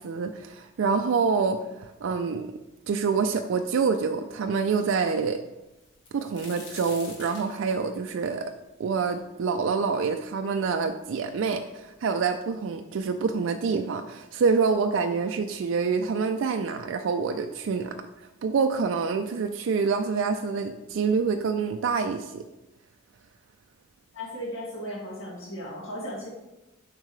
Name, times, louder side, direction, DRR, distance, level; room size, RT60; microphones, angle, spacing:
voice 1, 0.0-2.5 2.9-5.4 6.1-8.4 8.8-22.4, right 5 dB, 75° right, 6 dB, 0.3 m, -26 dB
sound 1, 5.8-9.6 10.1-10.2 11.0-11.1 11.3-12.0 12.9-13.0 13.4-13.6, left 3 dB, 65° left, 1.5 m, -46 dB
voice 2, 24.1-26.3, equal, 80° left, -4 dB, 2.3 m, -36 dB
7.4 x 5.4 x 3.1 m, 1.0 s
head